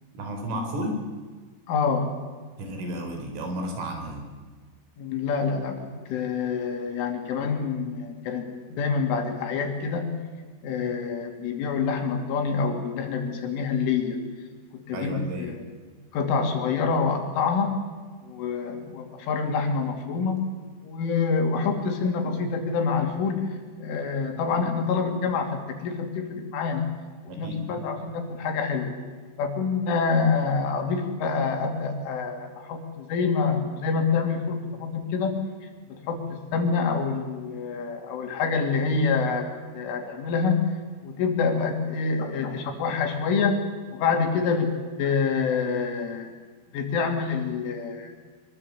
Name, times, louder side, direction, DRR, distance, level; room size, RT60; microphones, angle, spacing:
voice 1, 0.1-1.0 2.6-4.3 14.9-15.5 27.3-27.8, equal, 85° right, 4 dB, 6.5 m, -32 dB
voice 2, 1.7-2.1 5.0-10.1 10.6-14.2 14.7-15.6 16.1-17.8 18.2-20.4 20.8-23.5 23.8-26.9 27.3-28.9 29.4-35.3 35.9-40.6 41.0-43.6 43.9-44.7 45.0-46.3 46.7-48.1, left 5 dB, 80° left, 4 dB, 5.3 m, -26 dB
24.0 x 22.5 x 8.3 m, 1.4 s
omnidirectional pair, 5.6 m